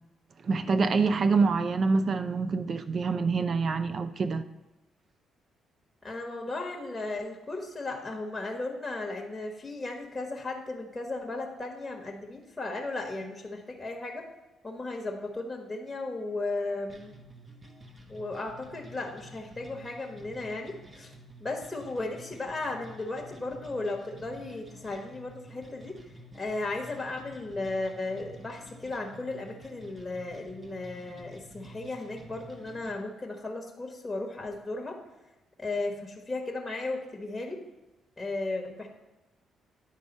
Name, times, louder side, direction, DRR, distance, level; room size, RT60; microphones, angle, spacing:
voice 1, 0.4-4.4, right 4 dB, 50° right, 11 dB, 0.5 m, -26 dB
voice 2, 6.0-14.3 14.6-17.1 18.1-21.1 21.4-26.0 26.3-35.0 35.6-37.6 38.2-38.9, left 2 dB, 15° left, 1 dB, 1.2 m, -35 dB
sound 1, 16.9-32.9, right 1 dB, 30° right, 1.0 m, -50 dB
10.0 x 3.6 x 5.3 m, 1.1 s
cardioid pair, 90°, 0 cm